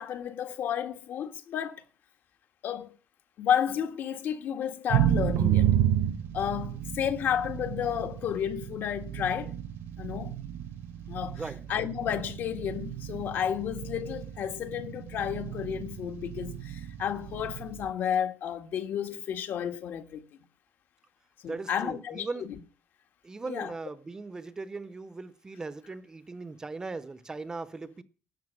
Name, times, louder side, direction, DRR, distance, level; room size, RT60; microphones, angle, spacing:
voice 1, 0.0-1.8 2.6-2.9 3.4-5.8 6.3-9.5 10.0-10.3 11.1-11.4 11.7-20.2 21.4-22.6 23.5-23.7, left 9 dB, 60° left, 1.7 m, -32 dB
sound 1, 4.9-17.9, right 10 dB, 75° right, 1.2 m, -31 dB
voice 2, 11.3-11.7 21.4-22.5 23.2-28.0, right 3 dB, 15° right, 0.7 m, -39 dB
12.5 x 8.3 x 8.8 m
cardioid pair, 175°, 4 cm